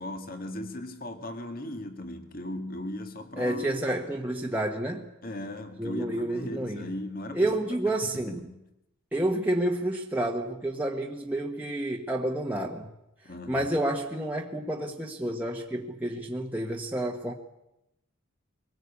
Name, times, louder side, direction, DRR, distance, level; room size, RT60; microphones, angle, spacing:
voice 1, 0.0-3.7 5.2-7.5 8.0-8.6 13.2-13.7, left 1 dB, 45° left, 2.1 m, -37 dB
voice 2, 3.4-5.1 5.8-6.8 7.3-8.4 9.1-12.9 13.5-17.3, right 1 dB, 10° right, 1.4 m, -29 dB
23.5 x 19.0 x 8.5 m
head